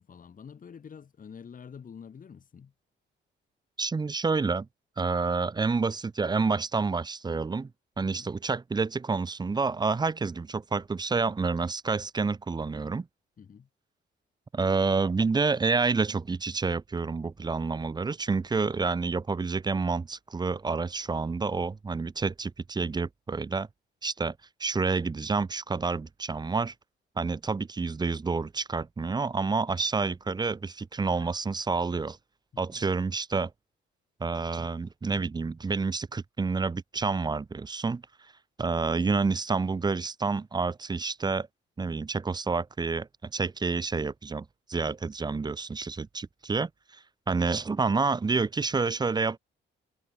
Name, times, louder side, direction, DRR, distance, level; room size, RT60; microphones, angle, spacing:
voice 1, 0.0-2.7 8.0-8.3 13.4-13.7 32.5-32.8, left 7 dB, 45° left, 2.3 m, -47 dB
voice 2, 3.8-4.7 5.0-7.7 8.0-13.1 14.5-23.7 24.0-26.7 27.2-32.2 32.6-33.5 34.2-38.0 38.6-41.5 41.8-49.4, right 4 dB, 20° right, 0.6 m, -29 dB
cardioid pair, 90°, 20 cm